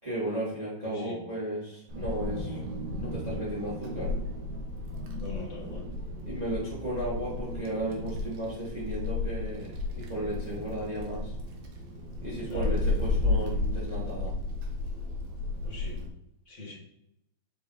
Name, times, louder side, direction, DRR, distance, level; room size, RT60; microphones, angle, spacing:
voice 1, 0.0-2.6 3.0-4.1 6.2-11.3 12.2-14.3, right 1 dB, 10° right, -6 dB, 1.7 m, -35 dB
voice 2, 0.8-1.2 5.2-5.8 12.5-12.7 15.6-16.0 16.4-16.7, left 3 dB, 35° left, -4 dB, 1.1 m, -41 dB
Wind, 1.9-16.1, left 2 dB, 70° right, 1.7 m, -33 dB
5.5 x 5.4 x 4.1 m, 0.77 s
omnidirectional pair, 4.6 m